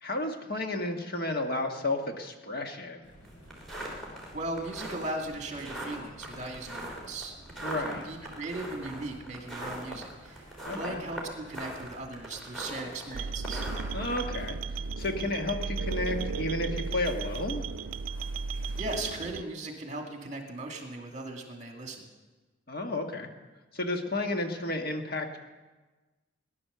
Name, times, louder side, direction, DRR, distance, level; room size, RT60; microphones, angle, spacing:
voice 1, 0.0-3.0 7.6-8.0 10.7-11.0 13.9-14.6 15.0-17.7 22.7-23.3 23.7-25.4, left 2 dB, 45° left, 4 dB, 1.5 m, -32 dB
sound 1, 3.0-19.3, equal, 65° left, 6.7 m, -53 dB
sound 2, 3.2-14.2, right 1 dB, ahead, 3.2 m, -40 dB
voice 2, 4.3-7.3 7.6-13.6 18.8-22.1, right 2 dB, 35° right, 3 dB, 2.1 m, -38 dB
sound 3, 13.1-19.4, right 4 dB, 85° right, 0.4 m, -34 dB
19.0 x 11.0 x 6.8 m, 1.2 s
head